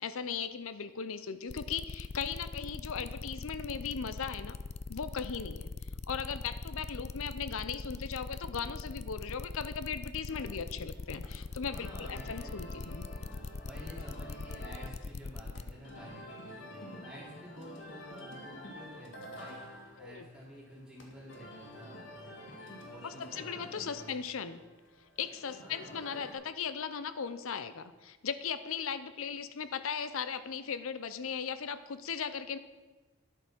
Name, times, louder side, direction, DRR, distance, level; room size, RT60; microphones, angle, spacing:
voice 1, 0.0-4.6 4.9-5.7 6.1-13.1 20.0-20.2 23.0-24.6 25.2-32.6, left 6 dB, 70° left, 13 dB, 0.6 m, -38 dB
sound 1, 1.5-15.7, left 3 dB, 30° left, 0.3 m, -41 dB
sound 2, 10.3-26.3, left 1 dB, 55° left, 1.8 m, -49 dB
voice 2, 11.7-13.0 13.7-24.2 25.6-26.0, equal, 5° right, -6 dB, 3.1 m, -51 dB
11.0 x 8.3 x 6.1 m, 1.3 s
head